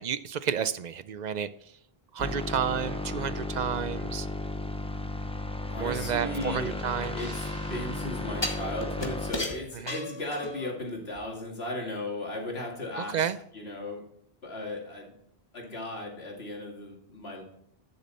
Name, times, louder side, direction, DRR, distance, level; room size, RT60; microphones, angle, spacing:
voice 1, 0.0-1.7 2.1-4.3 5.8-7.2 9.7-10.0 13.0-13.4, right 8 dB, 55° right, 14 dB, 0.5 m, -31 dB
sound 1, 2.2-9.3, left 2 dB, 5° left, 0.6 m, -34 dB
voice 2, 5.7-6.7 7.1-13.2 13.5-14.0 14.4-15.1 15.5-17.4, left 1 dB, 80° left, 0 dB, 2.6 m, -36 dB
sound 2, 6.4-7.6 8.4-10.8 11.1-11.2, left 1 dB, 25° left, 1.3 m, -36 dB
sound 3, 7.2-9.4, right 2 dB, 75° right, 2.1 m, -52 dB
11.5 x 6.8 x 4.1 m, 0.70 s
omnidirectional pair, 1.0 m